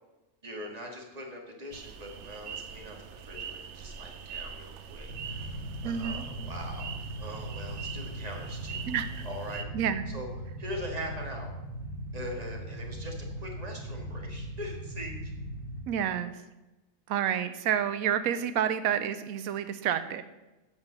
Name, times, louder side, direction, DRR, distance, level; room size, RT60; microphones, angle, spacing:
voice 1, 0.4-8.8 9.2-9.7 10.1-10.3 10.6-11.5 12.1-15.3, equal, 30° right, 1 dB, 2.0 m, -42 dB
sound 1, 1.7-9.6, right 7 dB, 60° right, 0.9 m, -42 dB
Motorcycle / Idling, 5.1-15.8, equal, 50° left, 3.4 m, -39 dB
voice 2, 5.8-6.2 8.8-9.3 9.7-10.0 15.9-16.3 17.1-20.2, right 9 dB, 90° right, 11 dB, 1.0 m, -29 dB
8.1 x 6.8 x 6.8 m, 1.1 s
omnidirectional pair, 1.4 m